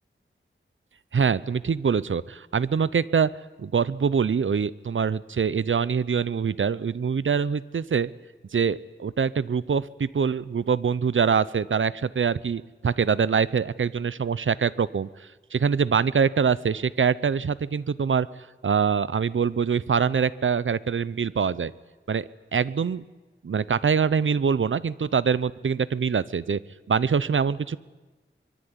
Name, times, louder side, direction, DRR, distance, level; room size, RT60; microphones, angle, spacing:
voice 1, 1.1-3.3 3.6-8.1 8.5-15.1 15.5-18.3 18.6-21.7 22.1-22.2 22.5-23.0 23.4-26.6 26.9-27.8, right 6 dB, 75° right, 18 dB, 0.8 m, -24 dB
24.5 x 22.0 x 9.8 m, 1.2 s
wide cardioid pair, 75°, 20 cm